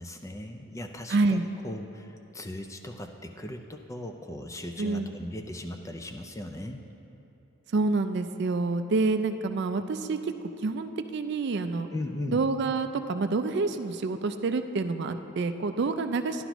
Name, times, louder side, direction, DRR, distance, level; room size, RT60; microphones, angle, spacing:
voice 1, 0.0-1.4 1.6-6.8 11.9-12.4, left 1 dB, 15° left, 5 dB, 0.4 m, -38 dB
voice 2, 1.1-1.4 4.8-5.1 7.7-10.2 10.6-11.9 12.3-16.4, right 3 dB, 50° right, 8 dB, 0.4 m, -27 dB
11.5 x 11.0 x 3.0 m, 2.9 s
head